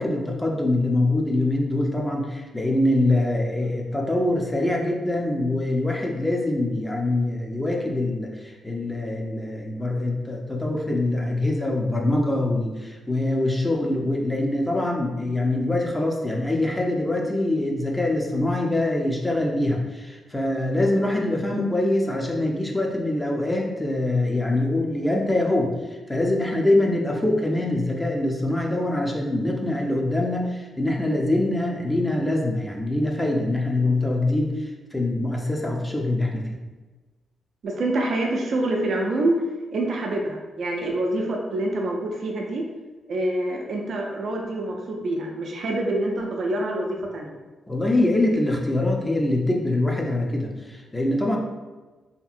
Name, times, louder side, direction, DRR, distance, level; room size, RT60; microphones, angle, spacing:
voice 1, 0.0-25.7 26.1-34.6 34.9-36.6 47.7-51.4, left 1 dB, 15° left, 0 dB, 0.6 m, -24 dB
voice 2, 37.6-39.4 39.7-42.7 43.1-47.4, right 1 dB, 65° right, 0 dB, 0.4 m, -26 dB
2.7 x 2.6 x 2.5 m, 1.2 s
supercardioid pair, 45°, 0 cm